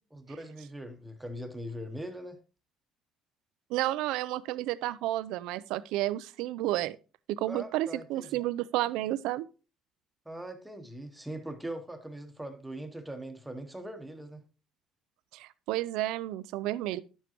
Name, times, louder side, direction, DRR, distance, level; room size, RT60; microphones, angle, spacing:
voice 1, 0.1-2.4 7.5-8.4 10.2-14.4, right 1 dB, 5° right, 1.0 m, -41 dB
voice 2, 3.7-7.0 7.3-9.4 15.3-17.0, right 15 dB, 90° right, 0.5 m, -31 dB
11.0 x 7.2 x 3.0 m
cardioid pair, 150°, 0 cm